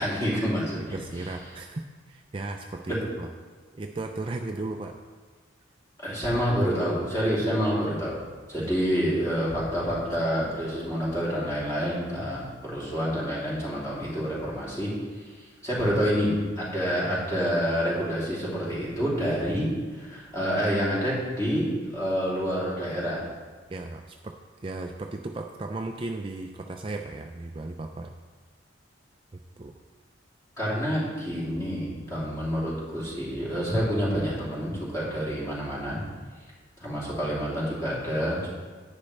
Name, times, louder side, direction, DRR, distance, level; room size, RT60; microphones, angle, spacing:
voice 1, 0.0-1.3 2.9-3.0 6.0-8.2 8.5-14.9 15.6-23.2 30.6-36.0 36.8-38.5, equal, 15° left, -8 dB, 3.1 m, -28 dB
voice 2, 0.8-3.3 3.7-5.0 6.1-6.2 8.6-8.7 17.0-17.2 23.7-24.4 24.6-28.1 29.6-29.8, right 2 dB, 30° right, 3 dB, 0.4 m, -36 dB
10.0 x 9.7 x 3.3 m, 1.4 s
head